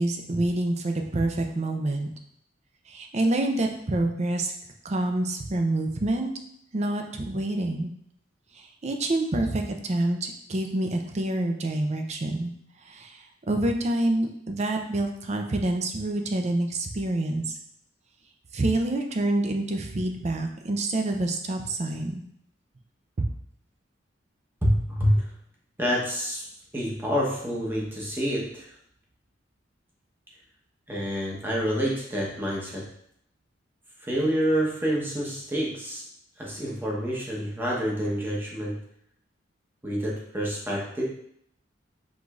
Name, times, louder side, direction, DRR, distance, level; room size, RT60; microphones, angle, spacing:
voice 1, 0.0-2.1 2.9-4.5 4.8-6.3 6.7-7.9 8.8-12.5 12.9-13.2 13.5-17.6 18.5-22.2, right 1 dB, 35° right, 4 dB, 0.5 m, -27 dB
voice 2, 24.6-25.2 25.8-26.4 26.7-28.7 30.9-32.9 34.0-36.0 36.4-38.8 39.8-41.0, equal, 10° right, -4 dB, 1.0 m, -27 dB
4.9 x 3.9 x 2.4 m, 0.70 s
head